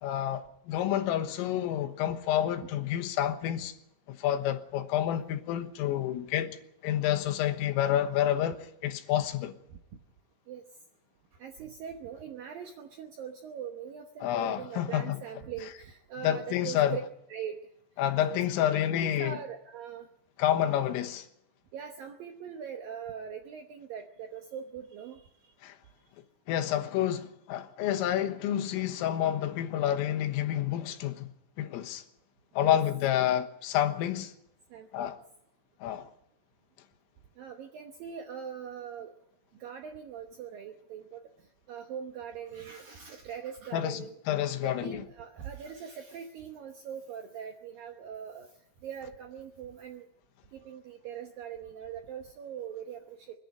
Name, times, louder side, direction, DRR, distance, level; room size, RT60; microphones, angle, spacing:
voice 1, 0.0-3.7 4.1-6.6 6.8-9.5 14.2-15.2 16.2-17.0 18.0-19.4 20.4-21.3 25.6-25.8 26.5-31.3 31.6-32.0 32.6-34.3 34.9-35.2 35.8-36.1 43.7-45.0, left 11 dB, 85° left, 3.9 m, -29 dB
voice 2, 11.4-17.0 17.3-17.6 18.3-18.4 18.7-20.1 21.7-25.3 32.6-32.8 34.7-35.2 37.4-39.1 39.6-41.2 41.7-44.2 44.6-48.5 48.8-50.1 50.5-53.2, right 8 dB, 80° right, 2.0 m, -41 dB
25.0 x 11.0 x 9.7 m
omnidirectional pair, 5.8 m